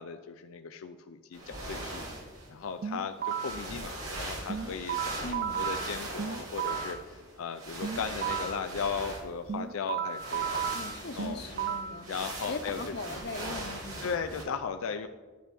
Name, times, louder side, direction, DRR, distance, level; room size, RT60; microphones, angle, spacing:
voice 1, 0.0-2.0 2.5-10.8 11.2-11.4 12.1-12.9 14.0-15.1, left 6 dB, 85° left, 8 dB, 0.4 m, -37 dB
sound 1, 1.3-2.5 3.2-9.6 10.0-14.4, right 1 dB, 80° right, 2.8 m, -40 dB
sound 2, 2.8-3.7 4.5-7.0 7.8-8.7 9.5-12.0, right 8 dB, 45° right, 0.3 m, -34 dB
voice 2, 5.2-5.6 10.7-12.1 12.5-14.1, left 3 dB, 50° left, 8 dB, 0.7 m, -39 dB
10.0 x 9.9 x 3.4 m, 1.4 s
head